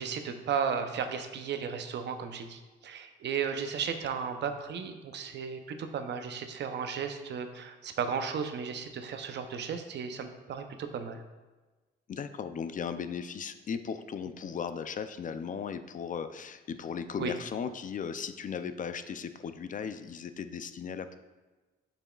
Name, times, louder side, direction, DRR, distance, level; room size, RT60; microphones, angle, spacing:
voice 1, 0.0-11.2 17.2-17.3, right 6 dB, 60° right, 7 dB, 0.7 m, -34 dB
voice 2, 12.1-21.2, left 6 dB, 40° left, 10 dB, 0.4 m, -37 dB
6.9 x 5.8 x 2.3 m, 1.2 s
cardioid pair, 90°, 20 cm